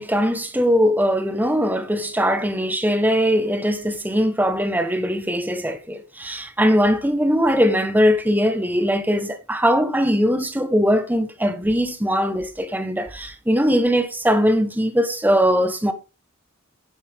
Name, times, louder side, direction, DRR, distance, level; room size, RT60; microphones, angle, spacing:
voice 1, 0.0-15.9, equal, 10° right, 1.2 m, -20 dB
10.5 x 9.8 x 3.6 m
head